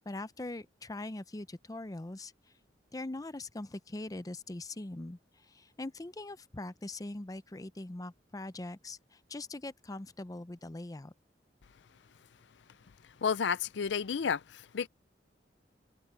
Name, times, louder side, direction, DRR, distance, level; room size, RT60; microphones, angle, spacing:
voice 1, 0.1-2.3 2.9-11.1, left 2 dB, 20° left, 0.6 m, -42 dB
voice 2, 13.2-14.9, left 6 dB, 75° left, 0.5 m, -31 dB
head